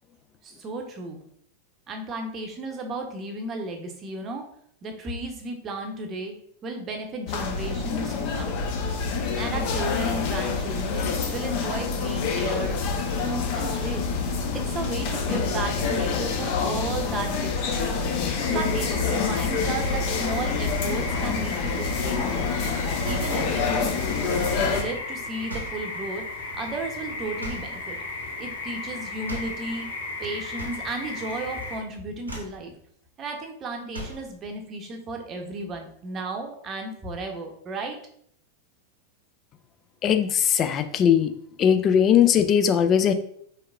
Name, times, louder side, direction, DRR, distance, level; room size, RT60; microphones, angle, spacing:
voice 1, 0.4-1.2 1.9-4.4 4.8-6.3 6.6-8.6 9.4-12.8 13.2-14.1 14.5-22.5 23.0-23.9 24.5-26.2 26.5-28.0 28.4-29.9 30.2-32.7 33.2-38.0, right 2 dB, 30° right, 3 dB, 0.8 m, -34 dB
sound 1, 7.3-24.8, left 5 dB, 45° left, 0.8 m, -27 dB
Frogs at Alsea River, 18.3-31.8, left 3 dB, 65° left, 1.0 m, -35 dB
sound 2, 23.1-24.6 25.5-25.9 27.4-27.8 29.3-29.6 30.6-31.3 31.6-31.9 32.2-32.6 33.9-34.3, right 1 dB, 80° right, 0.9 m, -38 dB
voice 2, 40.0-41.3 41.6-43.1, left 8 dB, 30° left, 8 dB, 0.4 m, -19 dB
4.6 x 3.5 x 2.4 m, 0.66 s
figure-of-eight pair, 90°, 0 cm